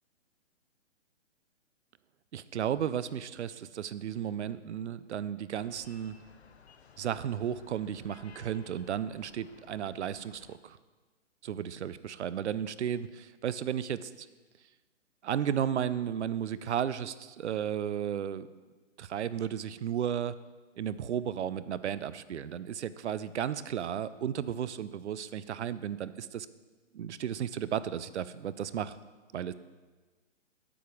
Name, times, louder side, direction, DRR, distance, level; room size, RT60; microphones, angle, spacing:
voice 1, 2.3-6.2 7.0-10.8 11.4-14.3 15.2-18.5 19.0-20.3 20.8-26.5 26.9-29.0 29.3-29.5, right 9 dB, 65° right, 15 dB, 0.6 m, -34 dB
sound 1, 5.6-10.6, left 6 dB, 55° left, 0.9 m, -57 dB
8.6 x 7.9 x 5.0 m, 1.3 s
hypercardioid pair, 150°, 38 cm